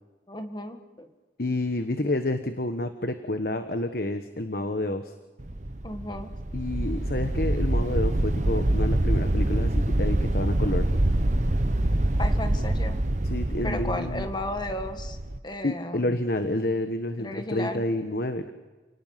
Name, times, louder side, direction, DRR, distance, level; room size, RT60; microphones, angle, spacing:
voice 1, 0.3-1.1 5.8-6.3 12.2-13.0 13.6-15.2 15.4-16.2 17.2-17.9, left 1 dB, 25° left, 7 dB, 1.9 m, -34 dB
voice 2, 1.4-5.0 6.5-10.9 13.3-14.3 15.6-18.5, left 1 dB, 55° left, 8 dB, 1.3 m, -29 dB
sound 1, 5.4-15.4, right 1 dB, 45° right, 1.0 m, -25 dB
29.5 x 18.5 x 5.8 m, 1.3 s
head